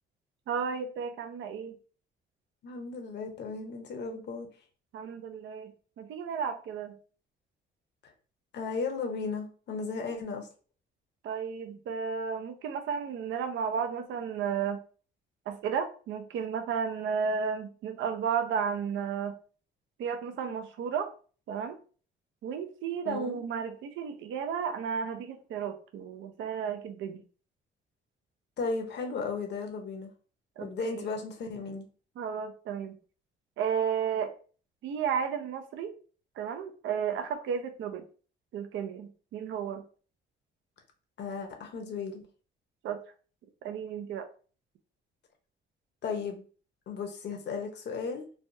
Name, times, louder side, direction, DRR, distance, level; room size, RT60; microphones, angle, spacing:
voice 1, 0.5-1.7 4.9-7.0 11.2-14.8 15.5-19.3 20.0-21.1 21.5-21.8 22.4-27.2 30.6-31.1 32.2-33.0 33.6-34.3 34.8-35.9 36.4-38.0 38.5-39.8 42.8-43.0 43.6-44.3, right 7 dB, 75° right, 7 dB, 0.5 m, -33 dB
voice 2, 2.6-4.5 8.5-10.5 23.1-23.4 28.6-30.1 30.6-31.8 41.2-42.3 46.0-46.4 46.9-48.2, left 4 dB, 60° left, 4 dB, 0.8 m, -35 dB
3.3 x 2.2 x 2.6 m, 0.39 s
cardioid pair, 90°, 20 cm